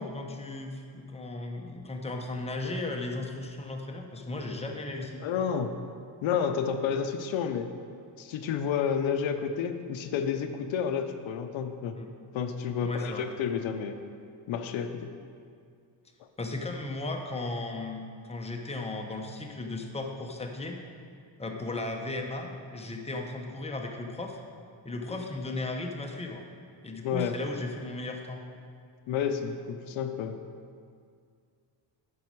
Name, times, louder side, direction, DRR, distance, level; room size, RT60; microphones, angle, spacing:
voice 1, 0.0-5.2 12.0-12.1 12.8-13.3 16.4-20.8 21.4-24.4 24.8-26.4 26.8-28.4, left 2 dB, 15° left, 2 dB, 0.8 m, -36 dB
voice 2, 5.2-5.7 6.2-7.7 8.2-12.0 12.3-14.0 14.5-15.1 16.2-16.3 27.0-27.4 29.1-30.4, left 7 dB, 80° left, 7 dB, 0.7 m, -30 dB
9.5 x 6.3 x 4.6 m, 2.2 s
cardioid pair, 130°, 46 cm